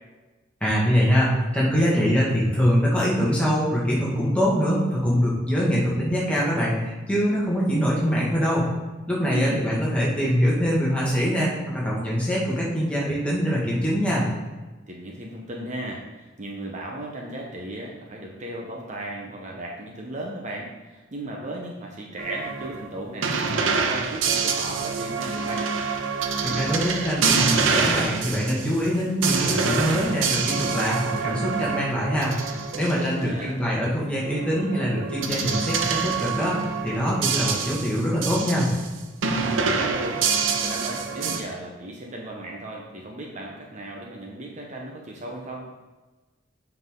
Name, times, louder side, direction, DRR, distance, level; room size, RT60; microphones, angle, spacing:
voice 1, 0.6-8.7 9.1-14.2 26.4-38.7, equal, 5° left, -6 dB, 1.7 m, -23 dB
voice 2, 9.3-9.7 14.9-25.7 32.7-33.5 39.4-40.2 40.6-45.7, right 1 dB, 40° right, -1 dB, 0.9 m, -36 dB
sound 1, 22.2-33.1 34.2-38.9 39.2-41.4, right 5 dB, 80° right, 0.7 m, -26 dB
7.8 x 5.8 x 3.7 m, 1.2 s
head